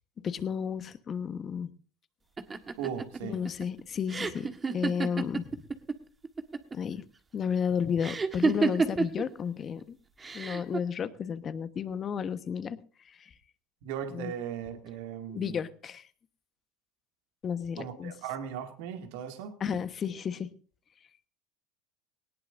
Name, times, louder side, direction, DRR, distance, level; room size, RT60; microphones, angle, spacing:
voice 1, 0.2-1.7 3.2-4.5 4.7-5.6 6.7-7.0 7.3-10.0 10.3-12.8 13.1-13.3 14.1-14.3 15.3-16.0 17.4-18.1 19.6-20.5, left 7 dB, 35° left, 1.3 m, -32 dB
sound 1, 2.4-6.0 6.2-6.9 8.0-9.2 10.2-10.8, right 4 dB, 20° right, 1.5 m, -29 dB
voice 2, 2.8-3.4 13.8-15.6 17.8-19.6, right 8 dB, 70° right, 2.3 m, -37 dB
19.0 x 18.5 x 2.7 m
hypercardioid pair, 85°, 0 cm